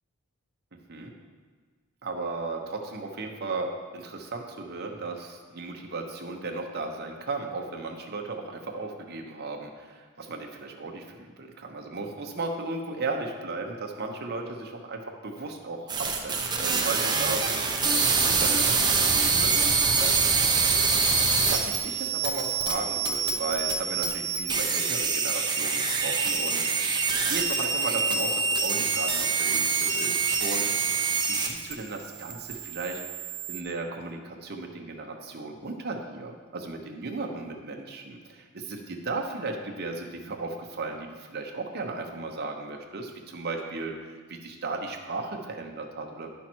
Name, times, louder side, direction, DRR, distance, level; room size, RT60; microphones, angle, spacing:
voice 1, 0.7-1.1 2.0-17.6 18.1-20.0 20.4-20.7 21.3-33.0 33.5-44.0 44.3-46.3, right 3 dB, 45° right, 2 dB, 1.0 m, -35 dB
sound 1, 15.9-31.7 32.0-33.6, right 4 dB, 20° right, 0.7 m, -25 dB
10.5 x 5.7 x 4.5 m, 1.5 s
head